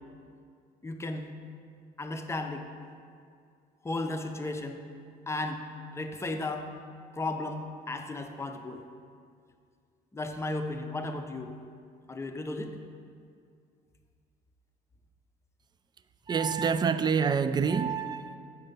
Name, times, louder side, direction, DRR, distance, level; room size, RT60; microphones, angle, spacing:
voice 1, 0.8-1.3 2.0-2.7 3.8-4.8 5.3-5.6 5.9-6.7 7.1-8.8 10.1-11.5 12.1-12.8, left 2 dB, 15° left, 5 dB, 0.7 m, -34 dB
voice 2, 16.3-18.4, right 6 dB, 25° right, 11 dB, 0.4 m, -27 dB
7.9 x 5.5 x 5.3 m, 2.2 s
cardioid pair, 110°, 17 cm